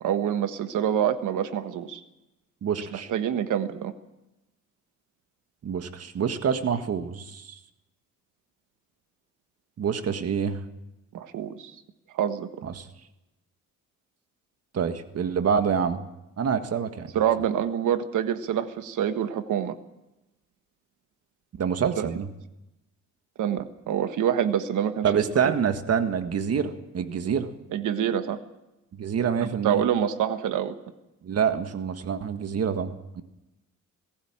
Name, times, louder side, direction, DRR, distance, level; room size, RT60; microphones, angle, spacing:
voice 1, 0.0-2.0 2.9-3.9 11.1-11.7 12.1-12.5 17.1-19.8 22.0-22.1 23.4-25.5 27.7-28.4 29.4-30.7, right 9 dB, 90° right, 9 dB, 1.5 m, -26 dB
voice 2, 2.6-3.1 5.6-7.6 9.8-10.6 12.6-12.9 14.7-16.0 16.4-17.1 21.6-22.3 25.0-27.5 28.9-29.8 31.2-33.2, right 7 dB, 55° right, 8 dB, 1.7 m, -26 dB
19.0 x 15.5 x 8.9 m, 0.96 s
cardioid pair, 110°, 30 cm